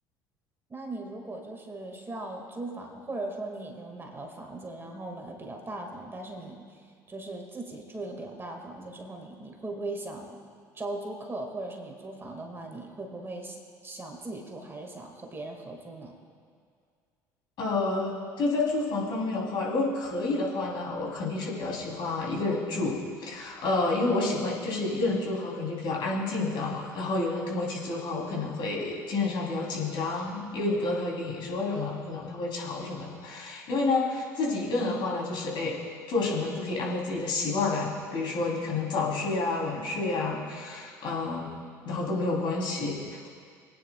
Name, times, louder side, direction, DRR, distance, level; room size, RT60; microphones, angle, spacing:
voice 1, 0.7-6.6 7.1-10.4 10.7-16.2, right 2 dB, 25° right, 2 dB, 2.0 m, -39 dB
voice 2, 17.6-35.7 36.1-41.5 41.8-43.3, left 3 dB, 55° left, -3 dB, 3.2 m, -29 dB
23.5 x 9.5 x 2.3 m, 2.1 s
hypercardioid pair, 60°, 9 cm